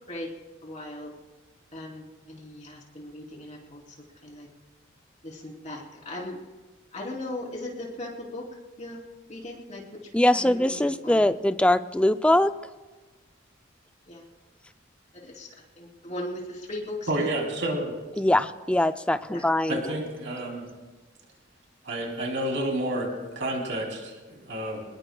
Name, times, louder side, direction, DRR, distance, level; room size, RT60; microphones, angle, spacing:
voice 1, 0.6-1.1 1.7-3.8 4.2-4.5 5.2-6.4 6.9-8.4 8.8-9.0 9.3-9.8 10.3-11.2 14.1-14.2 15.2-15.5 15.8-17.3 19.3-19.4 19.8-19.9, left 1 dB, 35° left, -2 dB, 3.3 m, -38 dB
voice 2, 10.1-12.5 18.2-19.8, left 1 dB, 5° left, 11 dB, 0.4 m, -22 dB
voice 3, 17.1-18.0 19.7-20.7 21.8-24.8, right 1 dB, 65° right, 0 dB, 3.1 m, -30 dB
24.5 x 20.5 x 2.3 m, 1.2 s
head